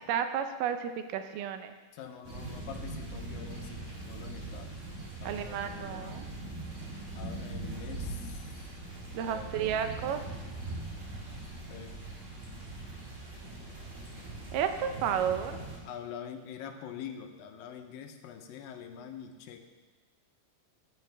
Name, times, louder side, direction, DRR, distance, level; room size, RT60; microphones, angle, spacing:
voice 1, 0.1-1.8 5.2-6.3 9.1-10.2 14.5-15.6, right 8 dB, 80° right, 8 dB, 2.2 m, -32 dB
voice 2, 1.9-4.8 5.2-6.3 6.8-6.9 7.1-8.7 9.2-10.2 11.7-12.0 15.9-19.6, left 8 dB, 90° left, 6 dB, 2.6 m, -45 dB
sound 1, 2.2-15.8, right 2 dB, 25° right, 1.9 m, -41 dB
14.5 x 10.0 x 3.4 m, 1.3 s
omnidirectional pair, 4.0 m